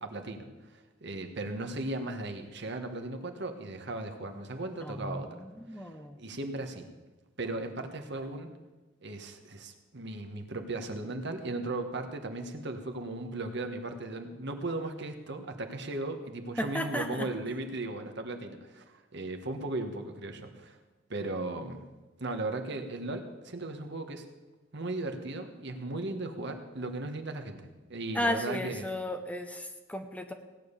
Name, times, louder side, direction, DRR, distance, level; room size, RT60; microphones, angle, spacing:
voice 1, 0.0-5.4 5.7-5.9 6.2-6.9 7.4-8.5 9.0-18.8 19.1-20.8 21.1-21.8 22.2-24.3 24.7-28.9, right 2 dB, 55° right, 6 dB, 1.4 m, -37 dB
voice 2, 4.8-6.2 16.6-17.3 28.1-30.3, left 1 dB, 5° left, 6 dB, 0.8 m, -34 dB
17.0 x 9.3 x 6.8 m, 1.2 s
head